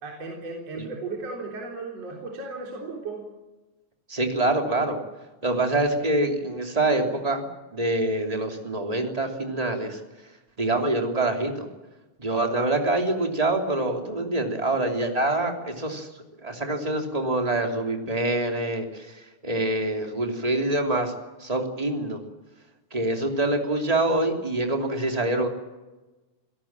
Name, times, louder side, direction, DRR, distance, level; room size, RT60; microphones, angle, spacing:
voice 1, 0.0-3.2 12.4-12.7, right 3 dB, 35° right, -1 dB, 4.3 m, -36 dB
voice 2, 4.1-5.0 5.4-10.0 10.6-11.7 12.2-16.1 16.4-21.1 21.4-22.2 22.9-25.5, right 2 dB, 10° right, 3 dB, 2.1 m, -25 dB
29.5 x 18.0 x 7.4 m, 1.1 s
omnidirectional pair, 5.1 m